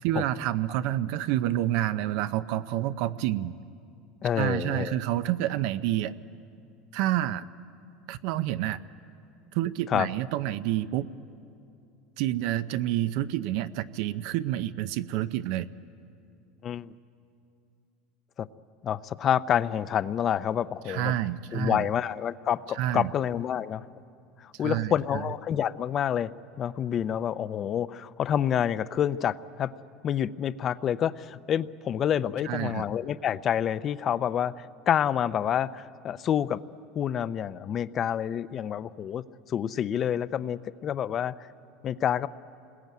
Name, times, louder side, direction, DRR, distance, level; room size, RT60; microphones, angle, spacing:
voice 1, 0.0-3.5 4.4-6.1 6.9-7.4 8.1-8.8 9.5-11.1 12.2-15.7 20.9-21.9 22.7-23.1 24.6-25.2 32.4-32.9, right 13 dB, 65° right, 13 dB, 0.6 m, -28 dB
voice 2, 4.2-5.0 9.9-10.1 16.6-16.9 18.4-18.5 18.8-21.1 21.5-23.9 24.4-26.3 26.6-29.7 30.0-36.6 36.9-41.3 41.8-42.3, left 9 dB, 30° left, 16 dB, 0.5 m, -28 dB
28.0 x 21.0 x 9.3 m, 2.6 s
supercardioid pair, 155°, 0 cm